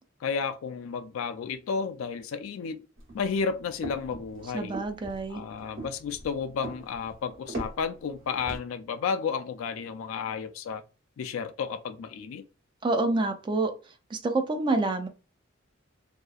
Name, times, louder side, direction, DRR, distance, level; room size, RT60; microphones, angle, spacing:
voice 1, 0.2-2.8 3.1-4.8 5.3-10.8 11.2-12.4, left 6 dB, 80° left, 0.3 m, -32 dB
sound 1, 3.0-8.6, right 2 dB, 65° right, 1.2 m, -41 dB
voice 2, 4.5-5.4 12.8-13.7 14.1-15.1, right 2 dB, 25° right, 0.3 m, -27 dB
2.8 x 2.3 x 2.3 m
head